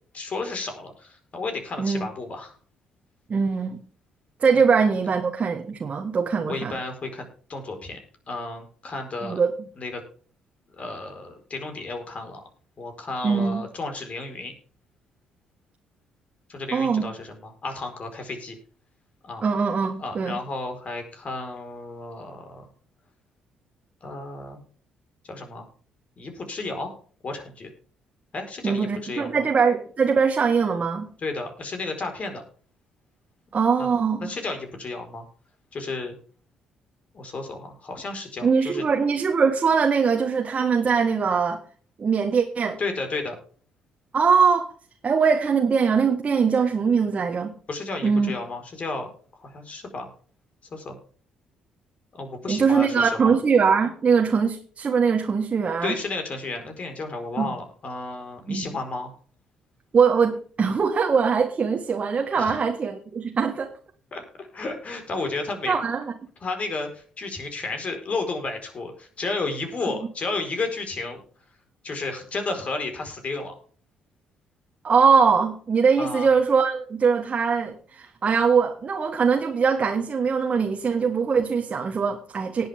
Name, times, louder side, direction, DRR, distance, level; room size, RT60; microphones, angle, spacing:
voice 1, 0.1-2.6 4.5-4.6 6.4-8.0 8.3-9.4 9.8-10.0 10.7-12.4 12.8-14.5 16.5-18.6 19.2-19.5 20.0-22.7 24.0-24.6 25.2-25.7 26.2-26.9 27.2-27.7 28.3-29.4 31.2-32.4 33.8-33.9 34.2-35.2 35.7-36.1 37.1-38.8 42.8-43.4 47.7-50.1 50.7-50.9 52.1-53.4 55.8-59.1 62.4-62.6 64.1-65.8 66.4-71.2 71.8-73.5 76.0-76.3, left 3 dB, 45° left, 5 dB, 4.6 m, -32 dB
voice 2, 3.3-3.8 4.4-6.8 9.3-9.5 13.2-13.6 16.7-17.1 19.4-20.4 28.6-31.0 33.5-34.3 38.4-41.6 42.0-42.8 44.1-44.7 45.0-47.5 48.0-48.3 52.5-56.0 57.4-57.5 58.5-58.8 59.9-63.7 65.7-66.1 74.8-82.7, right 5 dB, 40° right, 3 dB, 1.7 m, -22 dB
18.5 x 8.1 x 3.6 m, 0.44 s
hypercardioid pair, 45°, 3 cm